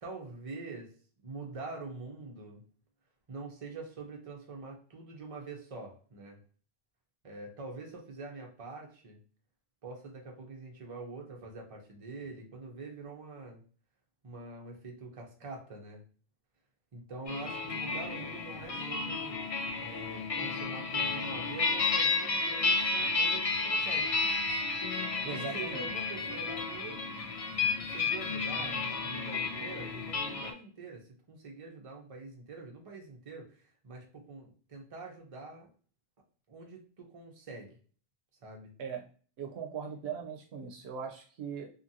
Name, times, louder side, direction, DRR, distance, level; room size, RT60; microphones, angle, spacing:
voice 1, 0.0-0.9 1.2-2.6 3.3-6.4 7.2-9.2 9.8-13.6 14.2-16.0 16.9-19.4 19.8-24.2 25.2-27.1 27.7-35.7 36.5-37.7 38.4-38.7, right 3 dB, 35° right, 0 dB, 0.8 m, -45 dB
sound 1, 17.3-30.5, left 3 dB, 40° left, 0.6 m, -32 dB
voice 2, 25.2-25.9 38.8-39.1 39.4-41.7, right 6 dB, 80° right, 3 dB, 0.8 m, -39 dB
2.8 x 2.5 x 2.7 m, 0.42 s
omnidirectional pair, 1.1 m